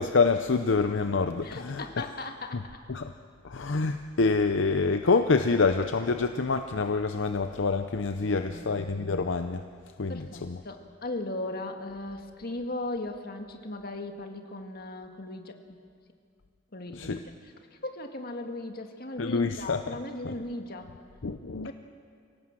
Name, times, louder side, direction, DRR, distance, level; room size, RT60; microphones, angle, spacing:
voice 1, 0.0-2.1 2.5-2.6 2.9-3.1 3.4-9.6 10.0-10.6 16.9-17.2 19.2-20.0 20.2-20.3 21.2-21.7, left 4 dB, 75° left, 8 dB, 0.7 m, -27 dB
voice 2, 1.4-2.8 8.2-8.6 10.1-15.8 16.7-17.2 17.8-20.9 21.6-21.7, left 2 dB, 50° left, 5 dB, 1.8 m, -37 dB
25.0 x 17.0 x 7.6 m, 2.2 s
head